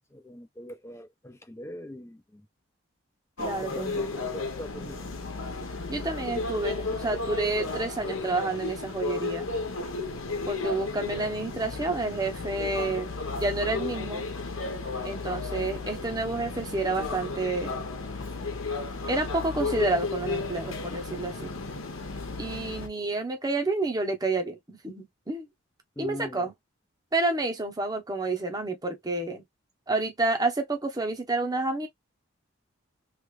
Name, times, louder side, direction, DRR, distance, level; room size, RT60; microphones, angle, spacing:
voice 1, 0.0-2.5 3.6-5.1 26.0-26.5, left 1 dB, 15° left, 0.5 m, -42 dB
sound 1, 3.4-22.9, left 3 dB, 80° left, 1.0 m, -34 dB
voice 2, 3.4-4.3 5.9-9.5 10.5-14.3 15.0-17.8 19.1-21.5 22.4-25.5 26.0-26.5 27.1-29.4 29.9-31.9, right 2 dB, 20° right, 0.8 m, -29 dB
3.3 x 2.4 x 3.2 m
head